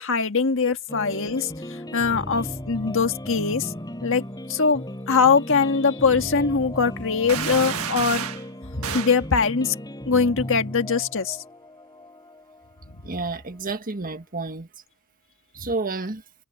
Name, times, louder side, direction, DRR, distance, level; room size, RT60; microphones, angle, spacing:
voice 1, 0.0-1.5 1.9-3.7 4.0-4.2 4.5-8.3 8.8-9.7 10.1-11.4, left 5 dB, 60° left, 1.6 m, -22 dB
sound 1, 0.9-13.8, equal, 20° left, 6.8 m, -36 dB
sound 2, 7.3-8.4 8.8-9.2, right 8 dB, 70° right, 1.5 m, -30 dB
voice 2, 13.0-14.7 15.5-16.2, right 3 dB, 40° right, 1.6 m, -30 dB
head